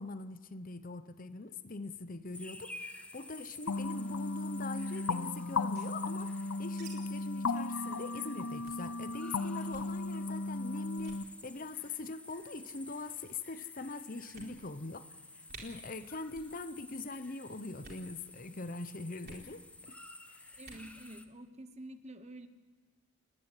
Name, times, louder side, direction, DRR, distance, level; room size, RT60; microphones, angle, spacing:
voice 1, 0.0-20.0 20.3-20.5, left 3 dB, 40° left, 13 dB, 0.8 m, -43 dB
sound 1, 2.3-21.2, left 2 dB, 5° left, 1.0 m, -52 dB
sound 2, 3.7-11.2, left 3 dB, 90° left, 0.7 m, -36 dB
sound 3, 5.5-6.9 7.2-7.3 7.5-7.7 8.1-8.2 8.6-8.9 9.6-9.9 10.5-10.7 11.0-11.2 12.1-12.5 13.3-13.4 13.8-13.9 14.3-14.9 15.2-15.3 15.5-15.6 16.3-16.6 16.8-17.2 17.7-18.1 19.2-19.5 20.5-20.9, right 4 dB, 50° right, 4.4 m, -53 dB
voice 2, 20.5-22.5, right 1 dB, 30° right, 9 dB, 1.1 m, -48 dB
29.0 x 11.5 x 9.7 m, 1.4 s
head